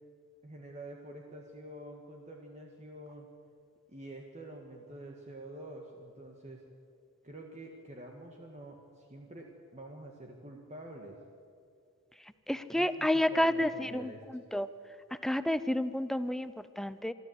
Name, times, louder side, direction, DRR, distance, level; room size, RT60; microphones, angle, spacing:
voice 1, 0.4-3.3 3.9-6.6 7.2-11.2 12.7-14.4, right 1 dB, 30° right, 1 dB, 1.6 m, -47 dB
voice 2, 12.5-14.1 14.5-14.7 15.2-17.1, left 1 dB, ahead, 13 dB, 0.5 m, -30 dB
25.5 x 13.0 x 8.0 m, 2.3 s
head